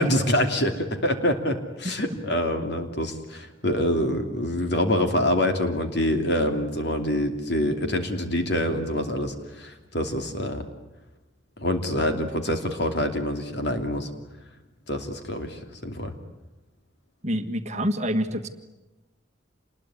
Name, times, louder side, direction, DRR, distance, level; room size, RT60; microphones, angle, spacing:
voice 1, 0.0-10.6 11.6-14.1 14.9-16.1, left 1 dB, 55° left, 6 dB, 2.9 m, -26 dB
voice 2, 17.2-18.5, equal, 35° right, 7 dB, 1.6 m, -26 dB
28.0 x 21.0 x 9.9 m, 1.0 s
head